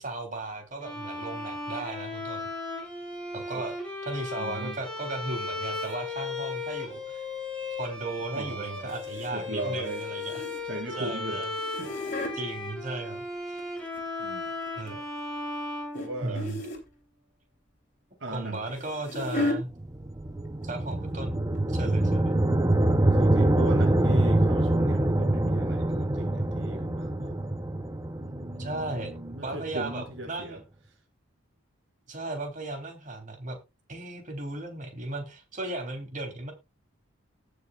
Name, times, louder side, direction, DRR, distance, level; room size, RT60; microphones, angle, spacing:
voice 1, 0.0-2.5 3.3-3.7 4.0-7.3 7.8-10.4 11.0-11.5 12.3-13.6 14.8-15.0 16.2-16.6 18.3-19.7 20.6-21.3 21.7-22.4 28.6-30.6 32.1-33.6 33.9-36.5, right 2 dB, 40° right, 3.3 m, -36 dB
Bowed string instrument, 0.8-16.7, left 3 dB, 5° left, 5.9 m, -36 dB
voice 2, 4.4-4.8 8.3-8.9 9.3-10.0 10.6-11.4 11.8-12.3 14.2-14.4 15.9-16.5 18.2-18.8 19.4-19.5 22.8-27.4 28.2-30.6, right 1 dB, 60° right, 2.3 m, -38 dB
sound 1, 5.7-5.9 8.9-9.3 9.6-10.8 11.4-12.4 13.4-14.2 14.6-14.9 15.9-16.1 16.3-16.9 18.3-19.6 20.5-20.7 20.9-21.0 21.6-21.7, left 2 dB, 40° left, 3.6 m, -35 dB
sound 2, 19.7-30.0, right 1 dB, 15° right, 0.7 m, -25 dB
19.0 x 6.8 x 2.4 m
head